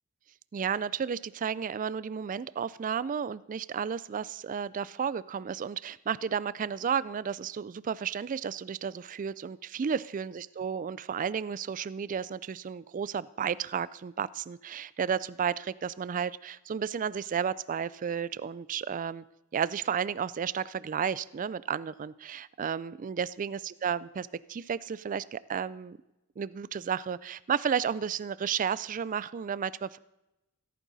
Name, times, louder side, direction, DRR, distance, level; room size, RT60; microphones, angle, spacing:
voice 1, 0.5-19.2 19.5-26.0 26.4-30.0, right 7 dB, 35° right, 19 dB, 0.3 m, -32 dB
15.0 x 14.0 x 4.1 m, 0.93 s
head